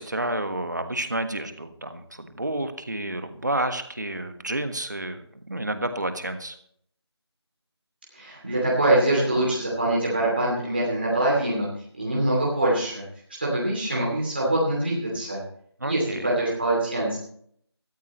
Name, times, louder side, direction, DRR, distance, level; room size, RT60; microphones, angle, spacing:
voice 1, 0.0-6.6 15.8-16.3, right 1 dB, 40° right, 8 dB, 1.5 m, -30 dB
voice 2, 8.1-11.7 12.0-13.0 13.4-15.4 15.8-17.2, right 1 dB, 20° right, -5 dB, 2.7 m, -24 dB
17.5 x 14.0 x 3.1 m, 0.66 s
figure-of-eight pair, 180°, 14 cm